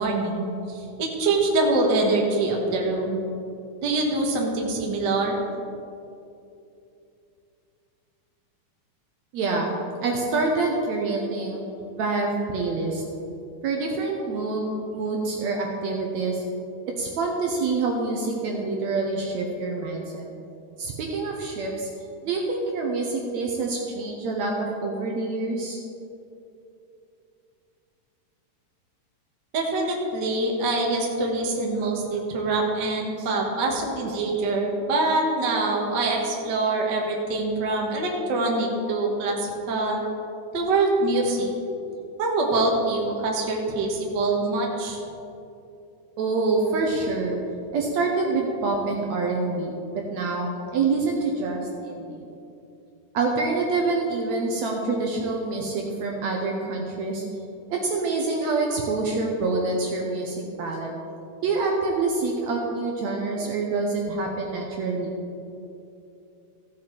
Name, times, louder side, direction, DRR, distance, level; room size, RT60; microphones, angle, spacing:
voice 1, 0.0-3.2 3.8-5.4 29.5-40.0 40.5-41.5 42.2-45.0, right 2 dB, 45° right, 0 dB, 1.5 m, -24 dB
voice 2, 9.3-11.6 11.9-13.0 13.6-16.4 17.0-20.3 20.8-21.9 22.2-25.8 46.2-47.4 47.7-52.2 53.1-57.2 57.7-60.9 61.4-65.2, right 3 dB, 70° right, 1 dB, 2.0 m, -26 dB
15.0 x 7.5 x 4.5 m, 2.7 s
omnidirectional pair, 3.6 m